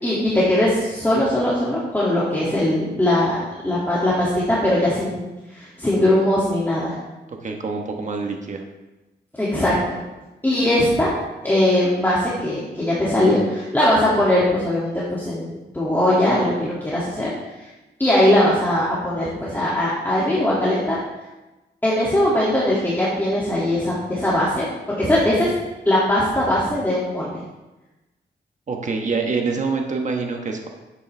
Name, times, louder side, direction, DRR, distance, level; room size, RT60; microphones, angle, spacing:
voice 1, 0.0-3.4 3.6-7.0 9.4-10.0 10.4-11.1 11.4-17.3 17.6-17.7 18.0-21.0 21.8-25.5 25.9-27.4, left 1 dB, 10° left, -8 dB, 2.3 m, -20 dB
voice 2, 7.3-8.6 28.7-30.7, right 4 dB, 40° right, 2 dB, 1.2 m, -26 dB
11.0 x 8.7 x 3.4 m, 1.1 s
cardioid pair, 110°, 19 cm